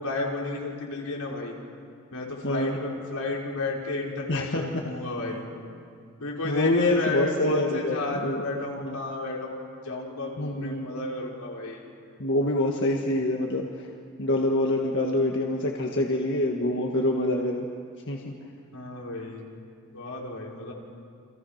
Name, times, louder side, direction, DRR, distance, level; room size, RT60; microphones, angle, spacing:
voice 1, 0.0-1.5 2.1-5.5 6.2-11.8 18.7-19.5 19.9-20.7, left 2 dB, 85° left, -3 dB, 5.3 m, -32 dB
voice 2, 2.4-2.8 4.3-4.8 6.4-8.4 8.8-9.0 10.4-10.9 12.2-13.9 14.2-17.7 18.1-18.4, left 1 dB, 55° left, 0 dB, 1.8 m, -26 dB
29.5 x 26.5 x 6.0 m, 2.3 s
head